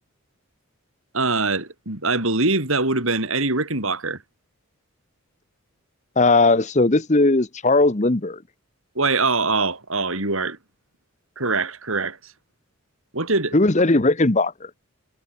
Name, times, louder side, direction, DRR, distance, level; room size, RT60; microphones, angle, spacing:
voice 1, 1.1-4.2 8.9-10.6 11.4-12.2 13.1-13.6, right 3 dB, 65° right, 4.5 m, -23 dB
voice 2, 6.2-8.4 13.5-14.7, left 2 dB, 30° left, 1.0 m, -18 dB
head